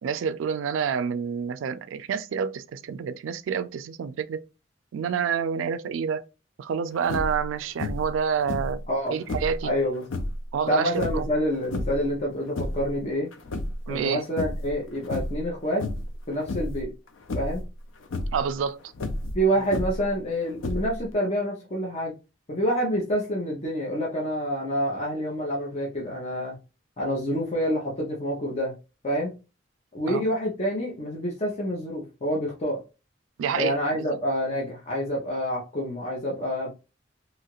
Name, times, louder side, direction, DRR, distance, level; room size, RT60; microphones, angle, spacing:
voice 1, 0.0-4.4 4.9-6.3 6.6-8.8 9.1-9.7 10.5-11.3 13.9-14.2 18.3-18.8 30.1-30.2 33.4-34.2, right 6 dB, 90° right, 0.3 m, -28 dB
sound 1, 7.0-7.5 7.8-8.2 8.5-9.6 10.0-10.4 10.9-12.1 12.4-12.9 13.3-14.1 14.4-14.7 15.0-15.5 15.8-16.2 16.5-16.8 17.3-17.6 18.0-18.4 18.9-20.1 20.6-21.1, left 2 dB, 90° left, 0.5 m, -31 dB
voice 2, 8.9-9.2 9.6-10.0 10.7-13.3 13.9-15.8 16.3-16.9 17.3-17.7 19.3-22.1 22.5-26.5 27.0-28.8 29.0-29.3 29.9-32.8 33.5-36.7, equal, 35° left, 0.7 m, -27 dB
2.9 x 2.4 x 2.9 m
head